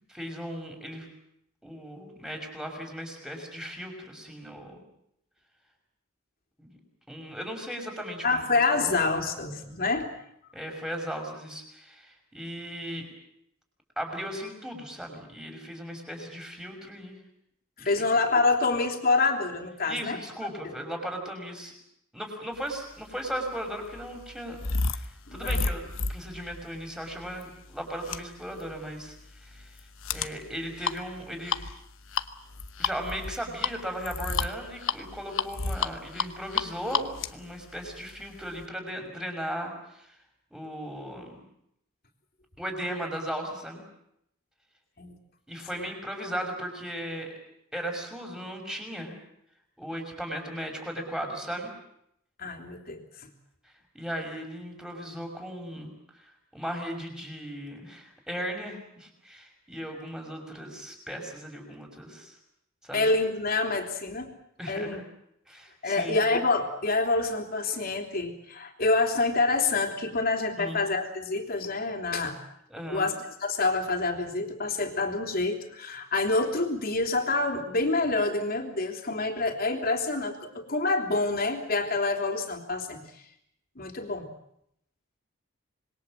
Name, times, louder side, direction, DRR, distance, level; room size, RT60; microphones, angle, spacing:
voice 1, 0.1-1.1 1.6-4.8 6.6-6.8 7.1-8.4 8.8-8.9 10.5-13.1 14.0-17.2 17.8-18.0 19.9-21.7 22.1-24.6 24.9-29.7 30.1-31.5 32.8-40.1 40.5-41.4 42.6-43.9 45.5-47.3 47.7-49.2 49.8-51.7 53.9-55.9 56.2-62.4 62.8-63.1 64.6-65.0 65.5-66.2 70.6-70.8 72.7-73.1, equal, 5° right, 2 dB, 5.8 m, -37 dB
voice 2, 8.2-10.1 17.8-20.2 20.6-20.7 25.3-25.6 45.0-45.1 45.8-45.9 52.4-53.3 62.9-64.3 64.7-65.0 65.8-72.4 72.9-73.1 73.4-83.0 83.7-84.3, left 3 dB, 45° left, 4 dB, 3.5 m, -27 dB
sound 1, 23.0-38.6, left 4 dB, 70° left, 1.2 m, -33 dB
26.5 x 22.0 x 7.5 m, 0.76 s
head